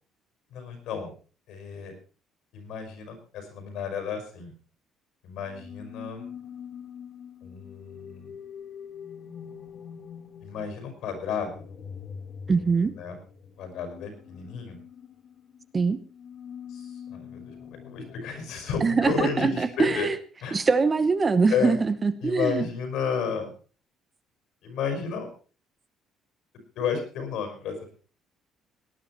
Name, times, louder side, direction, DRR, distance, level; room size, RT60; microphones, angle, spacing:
voice 1, 0.5-1.1 1.5-1.9 2.5-4.5 5.2-6.3 7.4-8.3 10.4-11.7 13.0-13.2 13.6-14.8 16.7-20.1 20.4-20.6 21.5-21.8 22.2-23.5 24.6-25.3 26.8-27.8, left 6 dB, 75° left, 6 dB, 5.6 m, -32 dB
sound 1, 5.5-19.2, left 7 dB, 50° left, 2.3 m, -44 dB
voice 2, 12.5-12.9 15.7-16.0 18.8-20.2 20.5-22.7, right 4 dB, 25° right, 12 dB, 1.0 m, -23 dB
18.5 x 10.0 x 4.4 m, 0.38 s
cardioid pair, 125°, 0 cm